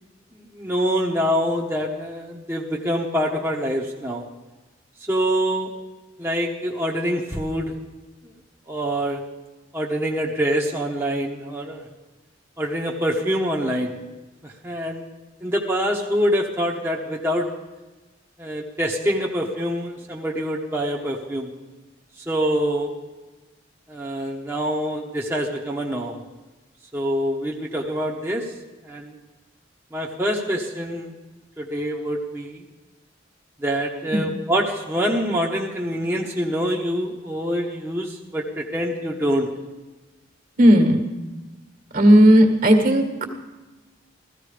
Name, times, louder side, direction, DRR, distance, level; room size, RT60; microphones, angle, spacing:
voice 1, 0.3-4.2 5.1-5.7 6.2-7.7 8.7-9.2 9.7-11.8 12.6-13.9 14.4-15.0 15.4-17.5 18.4-21.5 22.3-22.9 23.9-26.2 26.9-28.4 28.8-29.2 29.9-31.1 31.6-32.6 33.6-39.5, equal, 15° right, -2 dB, 1.2 m, -25 dB
voice 2, 40.6-41.0 41.9-43.1, equal, 50° right, 5 dB, 1.9 m, -14 dB
15.0 x 15.0 x 5.1 m, 1.2 s
head